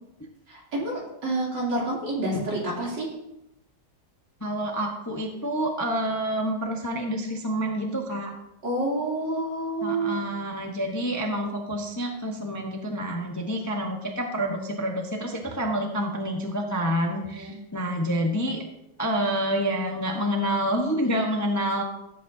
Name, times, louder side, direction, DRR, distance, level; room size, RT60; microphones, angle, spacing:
voice 1, 0.5-3.1 8.6-10.2 17.3-17.5, right 2 dB, 75° right, -4 dB, 3.6 m, -28 dB
voice 2, 4.4-8.3 9.8-18.6 19.0-21.8, equal, 15° left, 1 dB, 0.7 m, -28 dB
15.0 x 8.2 x 2.7 m, 0.86 s
omnidirectional pair, 1.9 m